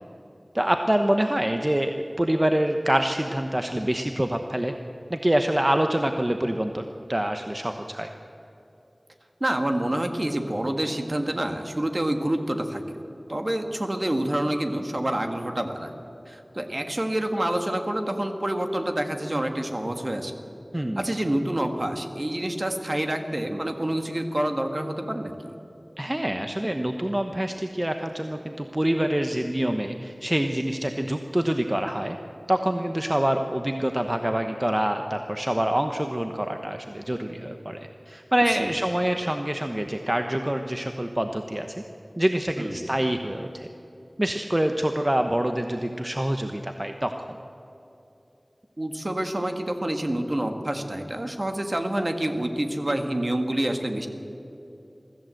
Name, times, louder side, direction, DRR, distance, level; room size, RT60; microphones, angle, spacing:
voice 1, 0.5-4.7 5.1-8.1 20.7-21.0 26.0-32.2 32.5-41.8 42.2-43.7 44.2-47.4, right 1 dB, 25° right, 5 dB, 0.9 m, -26 dB
voice 2, 9.4-13.0 13.3-15.9 16.3-20.4 21.0-25.6 38.5-38.7 42.6-42.9 48.8-54.1, right 1 dB, 45° right, 5 dB, 1.8 m, -27 dB
23.5 x 14.5 x 7.7 m, 2.9 s
wide cardioid pair, 50°, 0 cm